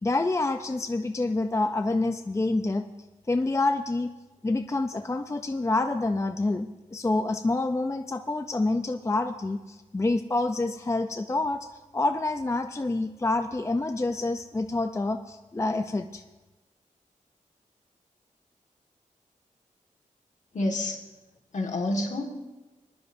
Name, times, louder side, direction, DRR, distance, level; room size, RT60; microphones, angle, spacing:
voice 1, 0.0-2.9 3.3-4.1 4.4-11.7 11.9-16.2, left 2 dB, 20° left, 7 dB, 0.5 m, -27 dB
voice 2, 20.5-21.0 21.5-22.2, left 1 dB, 60° left, 1 dB, 1.8 m, -28 dB
21.0 x 11.0 x 2.7 m, 1.1 s
wide cardioid pair, 90°, 14 cm